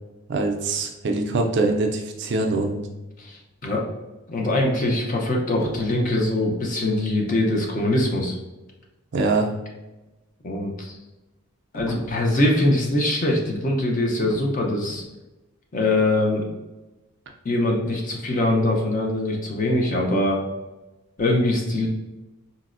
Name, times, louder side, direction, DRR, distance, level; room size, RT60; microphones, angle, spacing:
voice 1, 0.3-2.9 9.1-9.5, right 3 dB, 55° right, 2 dB, 0.4 m, -23 dB
voice 2, 3.2-3.9 4.3-8.4 10.4-11.0 11.7-15.0 15.7-16.5 17.4-20.4 21.2-21.9, left 1 dB, 35° left, 0 dB, 0.5 m, -22 dB
sound 1, 5.6-6.2 11.7-12.3 14.2-14.5 14.9-15.2, left 1 dB, 80° left, 0.6 m, -37 dB
4.0 x 2.0 x 2.4 m, 1.1 s
head